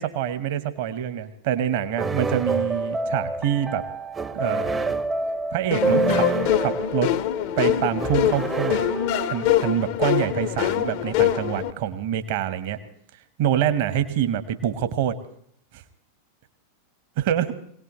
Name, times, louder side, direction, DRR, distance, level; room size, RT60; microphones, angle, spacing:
voice 1, 0.0-3.8 4.3-4.9 5.5-6.3 6.5-7.1 7.6-8.8 9.3-12.8 13.4-15.2 15.7-15.8 17.2-17.5, right 10 dB, 50° right, 11 dB, 1.1 m, -26 dB
sound 1, 2.0-9.7, right 3 dB, 15° right, 0.7 m, -28 dB
sound 2, 5.7-11.7, left 11 dB, 50° left, 0.7 m, -24 dB
24.0 x 17.5 x 3.1 m, 0.66 s
figure-of-eight pair, 90°, 0 cm